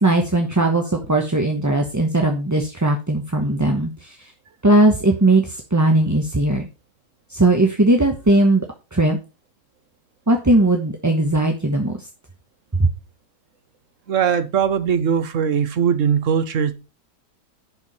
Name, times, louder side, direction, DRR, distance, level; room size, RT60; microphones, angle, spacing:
voice 1, 0.0-4.3 4.6-6.7 7.3-8.7 8.9-9.2 10.3-12.1 12.8-12.9, right 2 dB, 15° right, 2 dB, 0.9 m, -18 dB
voice 2, 14.1-16.7, right 7 dB, 55° right, 11 dB, 1.4 m, -20 dB
10.5 x 4.7 x 5.5 m, 0.30 s
omnidirectional pair, 1.6 m